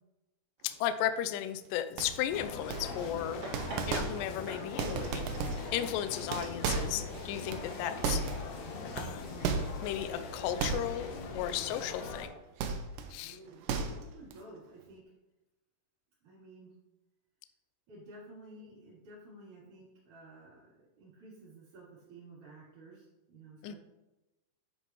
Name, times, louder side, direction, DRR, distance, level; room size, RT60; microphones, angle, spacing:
voice 1, 0.6-3.4 3.9-5.3 5.7-8.2 9.0-9.5 9.8-12.3 13.1-13.4 23.6-23.8, left 11 dB, 80° left, 10 dB, 2.0 m, -35 dB
sound 1, 2.0-2.3 2.7-3.2 3.5-4.4 4.7-5.8 6.1-8.6 9.0-10.0 10.6-11.2 11.5-11.7 12.6-13.1 13.5-14.3, right 5 dB, 75° right, 2.1 m, -35 dB
sound 2, 2.3-12.2, left 4 dB, 65° left, 2.2 m, -42 dB
sound 3, 3.2-10.7, right 2 dB, 35° right, 3.6 m, -50 dB
voice 2, 13.2-15.0 16.2-16.7 17.9-20.7 21.0-23.8, right 2 dB, 55° right, -12 dB, 4.7 m, -53 dB
10.0 x 9.2 x 3.1 m, 0.99 s
omnidirectional pair, 4.5 m